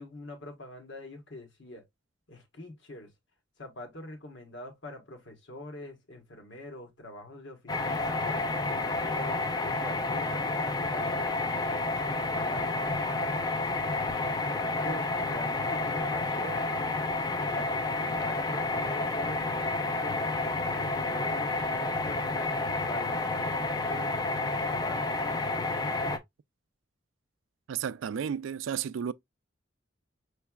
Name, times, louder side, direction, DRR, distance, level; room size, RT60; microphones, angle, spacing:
voice 1, 0.0-1.8 2.3-3.1 3.6-13.4 14.4-16.7 17.4-22.5 22.8-25.4, left 1 dB, 70° left, 1.3 m, -44 dB
sound 1, 7.7-26.2, left 2 dB, 20° left, 0.4 m, -30 dB
voice 2, 27.7-29.1, right 8 dB, 80° right, 0.3 m, -32 dB
5.8 x 3.2 x 2.2 m
head